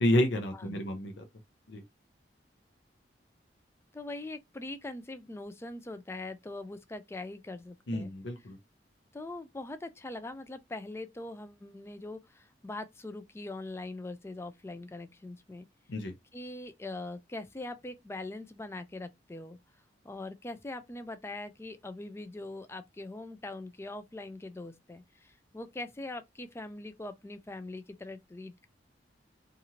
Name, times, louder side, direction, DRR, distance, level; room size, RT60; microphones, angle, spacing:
voice 1, 0.0-1.3 1.7-1.8 7.9-8.6 15.9-16.1, left 1 dB, 85° left, 0.6 m, -29 dB
voice 2, 0.5-0.8 3.9-8.1 9.1-15.7 16.3-19.6 20.0-28.7, left 2 dB, 15° left, 0.3 m, -42 dB
2.8 x 2.5 x 2.8 m
head